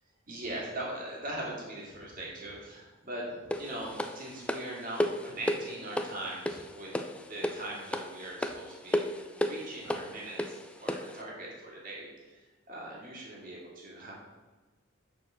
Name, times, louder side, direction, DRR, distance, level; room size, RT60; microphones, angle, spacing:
voice 1, 0.3-10.5 10.8-12.4 12.7-14.1, right 1 dB, 40° right, -4 dB, 2.3 m, -41 dB
sound 1, 3.5-11.2, left 1 dB, 5° left, 0.3 m, -34 dB
6.4 x 4.8 x 6.4 m, 1.2 s
head